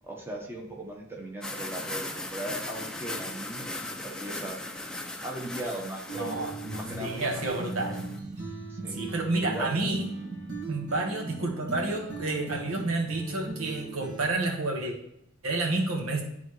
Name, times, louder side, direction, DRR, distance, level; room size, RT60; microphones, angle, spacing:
voice 1, 0.0-4.6 5.2-7.6 8.7-9.0 9.4-9.7 12.6-12.9, right 1 dB, 10° right, -1 dB, 1.2 m, -38 dB
sound 1, 1.4-8.2, left 2 dB, 5° left, 0.5 m, -38 dB
sound 2, 6.1-14.2, right 3 dB, 55° right, 1.6 m, -38 dB
voice 2, 6.2-6.5 7.0-8.0 8.9-10.1 10.7-15.0 15.4-16.2, right 2 dB, 85° right, 1 dB, 1.4 m, -29 dB
11.5 x 4.0 x 3.1 m, 0.77 s
head